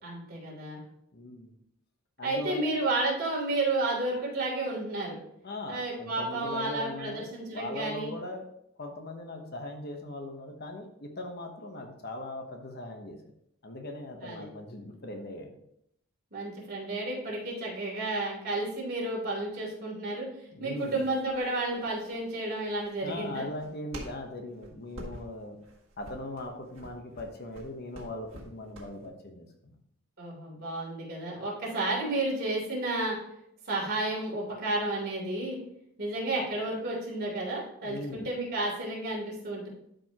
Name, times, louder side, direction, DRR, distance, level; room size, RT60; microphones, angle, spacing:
voice 1, 0.0-0.8 2.2-5.2 5.7-8.1 14.2-14.4 16.3-20.3 20.6-23.4 30.2-33.2 33.7-35.6 36.0-39.7, right 2 dB, 45° right, -3 dB, 3.2 m, -31 dB
voice 2, 1.1-1.5 2.2-2.6 5.4-8.5 8.8-13.2 13.6-15.6 20.5-21.0 23.0-25.6 26.0-29.8 37.8-38.3, left 1 dB, 45° left, 3 dB, 1.0 m, -39 dB
sound 1, 20.8-29.1, right 1 dB, 65° right, 1.8 m, -48 dB
12.0 x 5.2 x 2.9 m, 0.75 s
head